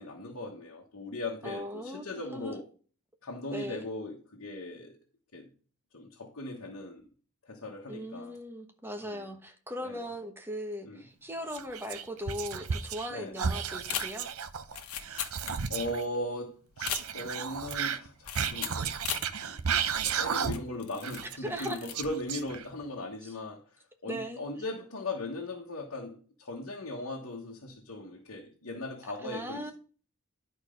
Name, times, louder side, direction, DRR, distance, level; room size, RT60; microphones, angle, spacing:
voice 1, 0.0-2.6 3.2-4.9 5.3-5.5 5.9-7.0 7.5-8.4 9.0-9.3 9.8-10.1 10.8-11.0 13.1-13.3 15.7-18.9 19.4-19.6 19.9-29.7, left 2 dB, 65° left, 1.3 m, -38 dB
voice 2, 1.4-2.5 3.5-3.9 7.9-14.3 21.4-21.8 23.2-23.3 24.0-24.4 29.2-29.7, equal, 10° right, 1.2 m, -39 dB
Whispering, 11.5-13.1 13.4-16.0 16.8-20.8 21.0-22.8, right 7 dB, 75° right, 0.7 m, -33 dB
sound 1, 13.8-16.0 16.2-16.3 16.7-17.5 18.2-19.3 19.8-19.9 20.5-21.3 21.5-22.1 22.4-22.7, left 9 dB, 90° left, 1.2 m, -38 dB
10.5 x 4.5 x 5.2 m
head